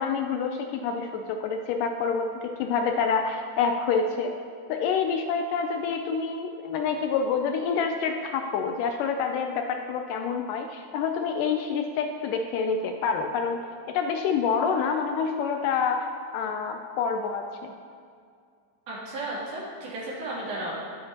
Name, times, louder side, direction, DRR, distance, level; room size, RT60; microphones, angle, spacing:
voice 1, 0.0-4.4 4.7-13.6 13.9-16.1 16.3-17.7, left 5 dB, 80° left, 5 dB, 2.0 m, -27 dB
voice 2, 18.9-20.7, right 1 dB, 85° right, -7 dB, 4.7 m, -34 dB
19.0 x 7.6 x 2.9 m, 2.3 s
omnidirectional pair, 4.1 m